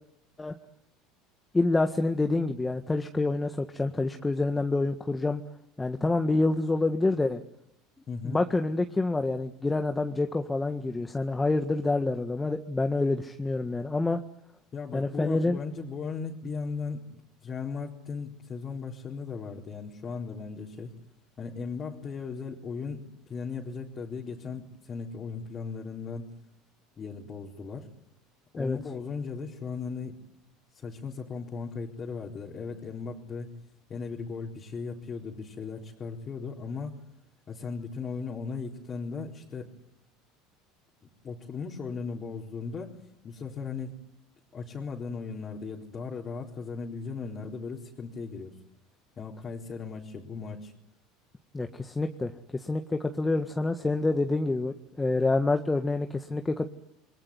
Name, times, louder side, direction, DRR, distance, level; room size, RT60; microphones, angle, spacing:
voice 1, 1.5-5.4 5.8-7.4 8.2-14.2 14.9-15.6 28.6-28.8 51.5-56.7, left 2 dB, 15° left, 6 dB, 1.7 m, -27 dB
voice 2, 8.1-8.4 14.7-17.0 17.4-21.0 21.4-23.0 23.3-26.3 27.0-27.9 28.5-30.2 30.7-33.6 33.9-36.9 37.5-39.7 41.2-42.9 43.2-44.0 44.5-48.5 49.2-50.7, left 5 dB, 35° left, -2 dB, 4.1 m, -37 dB
29.0 x 21.0 x 9.7 m, 0.80 s
hypercardioid pair, 80°, 0 cm